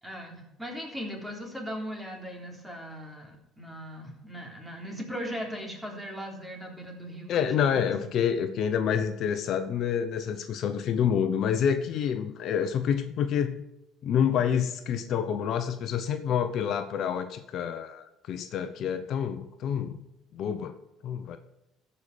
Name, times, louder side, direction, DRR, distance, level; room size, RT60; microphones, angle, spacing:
voice 1, 0.0-8.1, equal, 10° right, 0 dB, 3.6 m, -39 dB
voice 2, 7.3-13.6 14.0-20.0 20.3-20.7 21.0-21.4, left 8 dB, 60° left, 9 dB, 0.9 m, -28 dB
14.5 x 5.7 x 4.9 m, 0.88 s
supercardioid pair, 80°, 0 cm